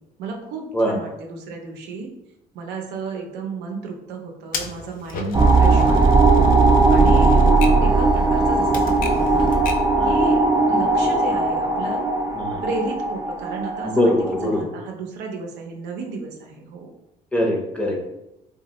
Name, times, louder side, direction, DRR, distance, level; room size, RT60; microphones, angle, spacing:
voice 1, 0.2-2.1 2.5-6.4 6.9-7.4 7.8-9.5 10.0-10.4 10.6-12.0 12.6-14.1 14.4-16.9, right 3 dB, 90° right, 1 dB, 0.6 m, -33 dB
Typewriter, 4.5-10.0, left 3 dB, 55° left, 0.4 m, -34 dB
sound 1, 5.3-14.6, right 3 dB, 25° right, 0.4 m, -18 dB
voice 2, 13.8-14.6 17.3-18.0, left 1 dB, 5° left, -1 dB, 0.7 m, -22 dB
2.9 x 2.2 x 2.9 m, 0.89 s
cardioid pair, 110°, 17 cm